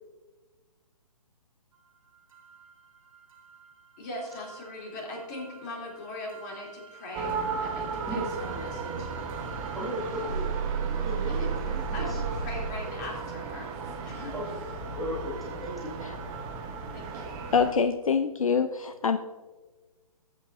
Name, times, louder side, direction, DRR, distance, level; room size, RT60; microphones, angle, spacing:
sound 1, 2.3-12.7, right 6 dB, 60° right, 1.8 m, -37 dB
voice 1, 4.0-9.1 11.9-14.3 16.9-17.2, left 1 dB, 30° left, -2 dB, 3.2 m, -40 dB
sound 2, 7.1-17.7, right 4 dB, 20° right, 0.9 m, -36 dB
voice 2, 9.7-10.5 10.9-12.2 14.3-14.4 14.9-15.9, equal, ahead, -6 dB, 1.8 m, -35 dB
voice 3, 17.5-19.2, left 6 dB, 60° left, 9 dB, 0.6 m, -25 dB
16.0 x 8.3 x 2.6 m, 1.3 s
figure-of-eight pair, 135°, 19 cm